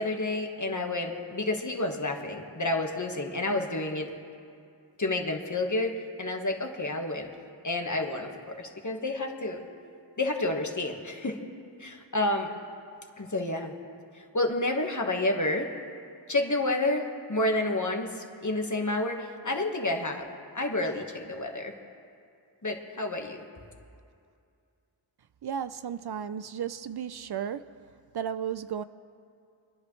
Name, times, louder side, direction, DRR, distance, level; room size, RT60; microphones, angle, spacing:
voice 1, 0.0-4.1 5.0-7.3 7.6-8.3 8.6-9.6 10.2-11.4 11.8-12.5 13.2-13.7 14.1-15.7 16.3-20.2 20.5-21.7 22.6-23.4, left 2 dB, 45° left, 1.5 m, -29 dB
voice 2, 25.4-27.7 28.1-28.8, right 8 dB, 60° right, 0.5 m, -34 dB
28.0 x 10.5 x 3.2 m
wide cardioid pair, 65°, 43 cm